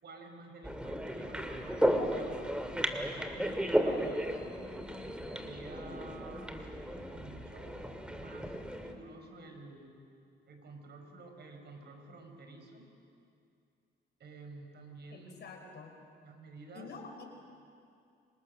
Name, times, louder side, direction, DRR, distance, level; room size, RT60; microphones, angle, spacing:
voice 1, 0.0-4.6 5.3-9.9 10.5-12.9 14.2-15.4 16.2-16.9, right 3 dB, 55° right, 4 dB, 5.1 m, -51 dB
sound 1, 0.6-8.9, equal, 5° right, 2.5 m, -34 dB
voice 2, 15.1-16.0 16.7-17.2, left 4 dB, 60° left, 3 dB, 4.9 m, -48 dB
28.5 x 26.5 x 6.6 m, 2.4 s
cardioid pair, 90°, 20 cm